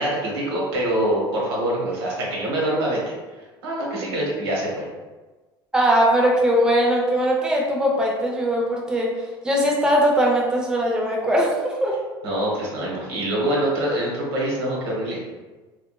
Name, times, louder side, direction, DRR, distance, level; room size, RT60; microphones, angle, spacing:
voice 1, 0.0-4.9 12.2-15.2, right 1 dB, 80° right, -4 dB, 0.9 m, -25 dB
voice 2, 5.7-9.1 9.4-12.0, equal, 5° right, -2 dB, 0.6 m, -20 dB
2.7 x 2.4 x 2.2 m, 1.2 s
hypercardioid pair, 70°, 13 cm